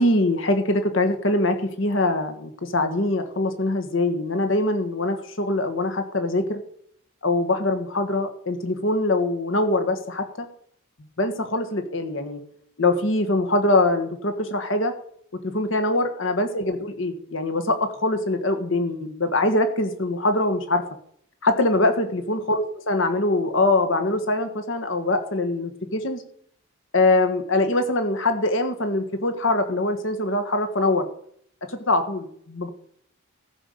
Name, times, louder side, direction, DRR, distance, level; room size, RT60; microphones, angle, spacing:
voice 1, 0.0-6.6 7.2-10.5 11.2-12.4 12.8-14.9 15.4-20.8 21.4-26.2 26.9-31.1 31.9-32.7, left 2 dB, 65° left, 7 dB, 1.5 m, -23 dB
14.5 x 5.5 x 6.6 m, 0.66 s
head